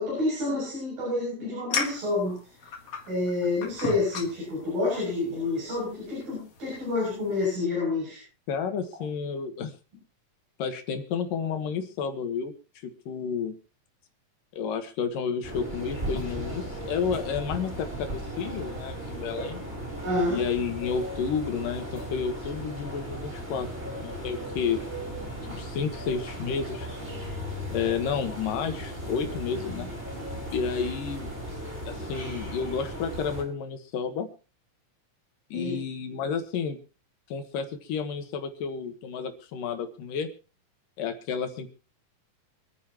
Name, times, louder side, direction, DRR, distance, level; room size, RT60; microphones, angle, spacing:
voice 1, 0.0-2.3 3.1-8.2 20.0-20.4 29.5-29.8 35.5-35.7, left 2 dB, 85° right, -4 dB, 9.7 m, -28 dB
sound 1, 1.7-7.6, left 5 dB, 50° left, 2.6 m, -37 dB
voice 2, 8.5-9.7 10.6-12.5 12.8-13.5 14.5-19.6 20.3-23.7 24.0-24.8 25.4-26.9 27.7-29.9 30.5-31.4 31.9-34.3 35.5-36.8 37.3-40.3 41.0-41.7, left 6 dB, 75° left, 6 dB, 3.1 m, -31 dB
sound 2, 15.4-33.4, equal, 20° right, 4.6 m, -36 dB
27.0 x 9.5 x 3.0 m, 0.36 s
omnidirectional pair, 4.0 m